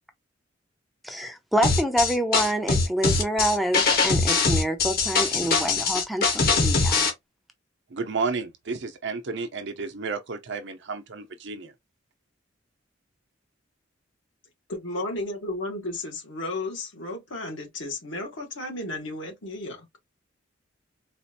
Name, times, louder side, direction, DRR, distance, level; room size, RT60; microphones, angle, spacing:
voice 1, 1.0-7.1, equal, ahead, 0.5 m, -27 dB
sound 1, 1.6-7.1, left 4 dB, 50° left, 1.2 m, -22 dB
voice 2, 7.9-11.7, right 4 dB, 65° right, 0.7 m, -32 dB
voice 3, 14.7-19.9, left 2 dB, 70° left, 1.5 m, -33 dB
4.2 x 2.5 x 2.8 m
head